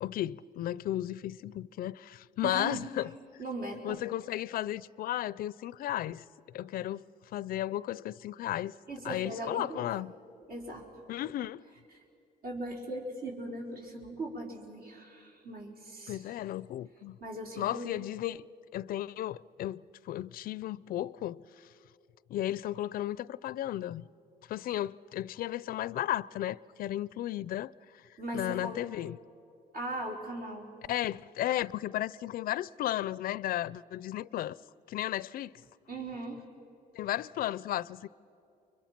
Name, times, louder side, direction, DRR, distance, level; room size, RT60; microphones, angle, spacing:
voice 1, 0.0-3.1 3.8-6.2 6.5-7.0 7.3-8.8 9.0-10.1 11.1-11.6 16.1-17.2 17.6-18.4 18.7-21.4 22.3-24.1 24.5-27.7 28.3-29.2 30.9-34.6 34.9-35.5 36.9-38.1, left 13 dB, 60° left, 0.5 m, -34 dB
voice 2, 2.4-2.9 3.4-4.0 8.9-10.0 10.5-10.9 11.9-12.0 12.4-16.3 17.2-18.0 28.2-28.9 29.7-30.7 35.9-36.4, right 2 dB, 60° right, 4.7 m, -39 dB
29.5 x 23.5 x 6.0 m
cardioid pair, 110°, 17 cm